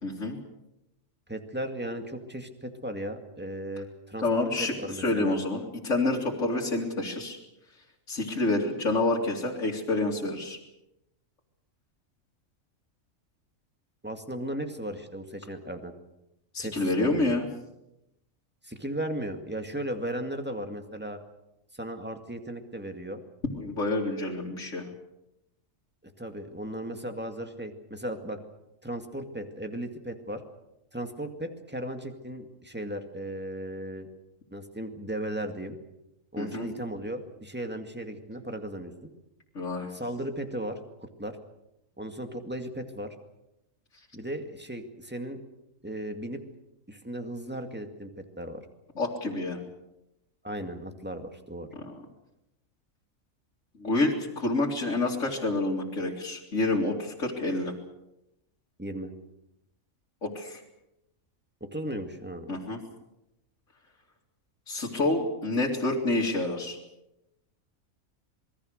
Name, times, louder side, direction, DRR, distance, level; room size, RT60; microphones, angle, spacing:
voice 1, 0.0-0.4 4.2-7.4 8.1-10.6 16.5-17.5 23.6-24.8 36.4-36.7 39.5-39.9 49.0-49.6 51.8-52.0 53.8-57.7 60.2-60.6 62.5-62.8 64.7-66.8, left 2 dB, 65° left, -3 dB, 3.1 m, -28 dB
voice 2, 1.3-5.4 14.0-15.9 16.6-17.4 18.6-21.2 21.7-23.2 26.0-28.4 28.8-30.4 30.9-34.1 34.5-35.8 36.3-39.1 39.9-41.4 42.0-43.1 44.1-45.4 45.8-46.4 46.9-48.1 48.4-48.6 50.4-51.7 58.8-59.1 61.6-62.5, right 1 dB, 5° right, 5 dB, 2.1 m, -36 dB
27.0 x 20.5 x 6.6 m, 0.87 s
omnidirectional pair, 1.4 m